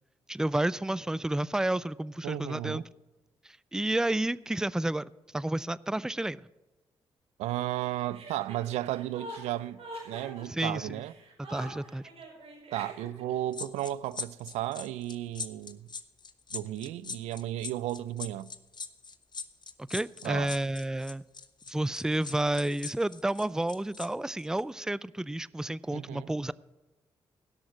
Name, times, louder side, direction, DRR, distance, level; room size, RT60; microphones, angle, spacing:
voice 1, 0.3-2.8 3.4-6.5 10.5-11.0 11.5-12.1 19.9-21.2 21.7-26.5, right 1 dB, 5° right, 0.4 m, -31 dB
voice 2, 2.2-2.8 7.4-9.8 10.1-11.1 12.7-15.9 16.5-18.5 20.2-20.5 25.9-26.3, right 14 dB, 85° right, 0.4 m, -34 dB
Chuckle chortle, 8.1-13.3, right 1 dB, 65° right, 5.5 m, -44 dB
sound 1, 13.5-24.1 24.4-24.6, left 5 dB, 40° left, 0.9 m, -41 dB
17.0 x 6.4 x 6.0 m
supercardioid pair, 50°, 11 cm